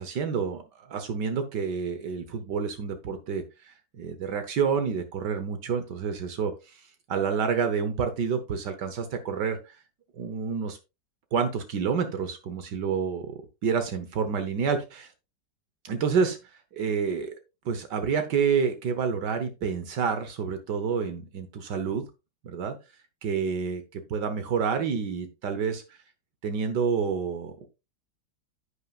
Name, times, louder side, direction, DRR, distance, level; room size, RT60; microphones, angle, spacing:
voice 1, 0.0-9.8 10.1-10.8 11.3-13.3 13.6-15.1 15.8-16.4 16.7-17.3 17.6-22.0 22.4-22.7 23.2-26.0 26.4-27.6, right 6 dB, 70° right, 8 dB, 1.6 m, -28 dB
10.5 x 8.4 x 2.3 m, 0.26 s
omnidirectional pair, 1.9 m